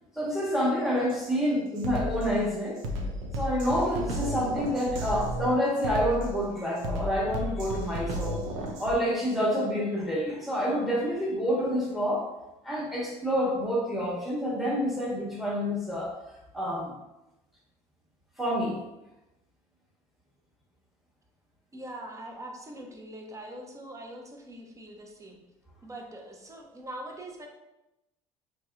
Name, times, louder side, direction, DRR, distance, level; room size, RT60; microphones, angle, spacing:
voice 1, 0.1-2.8 3.3-8.4 8.8-12.3 12.6-16.1 16.5-16.9 18.4-18.8, equal, ahead, -4 dB, 1.1 m, -28 dB
Drum kit, 1.1-1.3 1.8-9.0, equal, 75° right, 0.6 m, -34 dB
voice 2, 21.7-25.4 25.8-27.5, right 1 dB, 20° right, 1 dB, 0.6 m, -42 dB
3.1 x 2.7 x 2.3 m, 0.96 s
hypercardioid pair, 70°, 17 cm